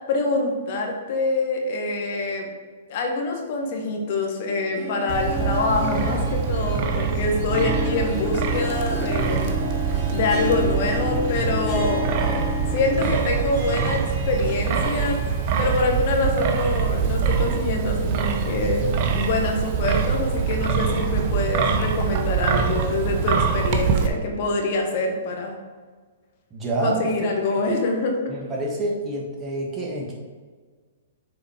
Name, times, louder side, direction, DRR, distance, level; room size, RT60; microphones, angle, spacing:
voice 1, 0.1-2.5 2.9-9.5 9.8-12.0 12.7-15.2 15.6-25.6 26.8-28.2, left 2 dB, 50° left, 2 dB, 1.4 m, -25 dB
Harp, 4.5-16.6 17.0-17.1 17.9-18.0, left 3 dB, 10° left, 2.0 m, -33 dB
Wind, 5.1-24.1, right 6 dB, 45° right, 0.7 m, -24 dB
voice 2, 26.5-27.1 28.3-30.1, right 2 dB, 20° right, -3 dB, 1.4 m, -27 dB
6.6 x 4.1 x 4.4 m, 1.5 s
hypercardioid pair, 125°, 0 cm